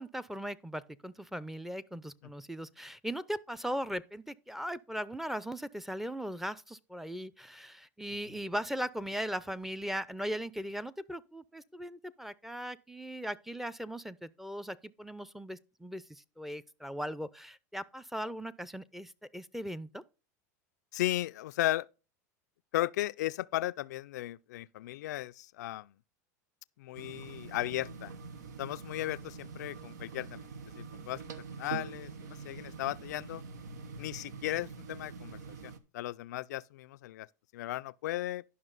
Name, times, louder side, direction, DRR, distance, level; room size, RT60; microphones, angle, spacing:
voice 1, 0.0-20.0, equal, ahead, 0.6 m, -39 dB
voice 2, 20.9-21.9 22.7-25.9 26.8-28.1 28.6-30.5 30.8-31.2 31.5-33.4 34.0-37.3 37.5-38.4, left 15 dB, 75° left, 0.4 m, -36 dB
sound 1, 26.9-35.8, right 5 dB, 80° right, 1.0 m, -45 dB
11.0 x 5.9 x 4.0 m
hypercardioid pair, 100°, 9 cm